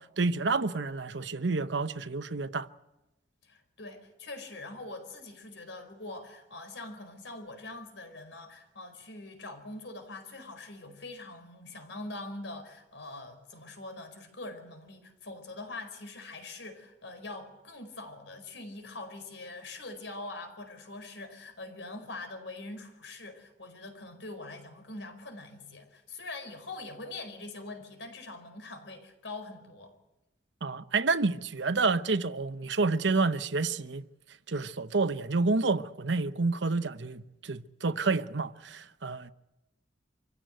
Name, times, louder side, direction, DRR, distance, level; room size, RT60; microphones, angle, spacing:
voice 1, 0.2-2.7 30.6-34.0 34.5-39.3, right 3 dB, 70° right, 0.9 m, -29 dB
voice 2, 3.4-29.9, left 2 dB, 85° left, 4.7 m, -43 dB
26.0 x 15.5 x 9.1 m
head